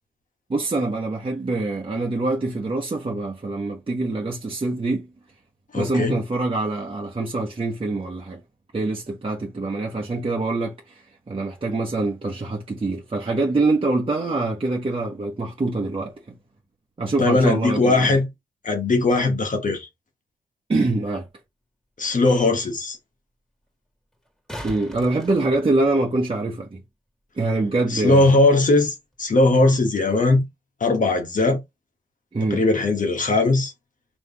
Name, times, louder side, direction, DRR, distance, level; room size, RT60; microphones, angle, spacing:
voice 1, 0.5-5.1 5.7-8.4 8.7-16.2 17.0-18.2 20.7-21.3 24.6-26.8 27.4-28.4 32.3-32.6, right 2 dB, 35° right, 1.0 m, -25 dB
voice 2, 5.7-6.2 17.2-18.3 18.6-19.9 22.0-23.0 27.9-30.4 30.8-31.6 32.5-33.7, left 2 dB, 55° left, 1.3 m, -19 dB
sound 1, 21.3-21.4 24.1-26.3 29.1-29.2, equal, 5° left, 1.9 m, -39 dB
3.4 x 3.0 x 2.8 m
supercardioid pair, 45°, 16 cm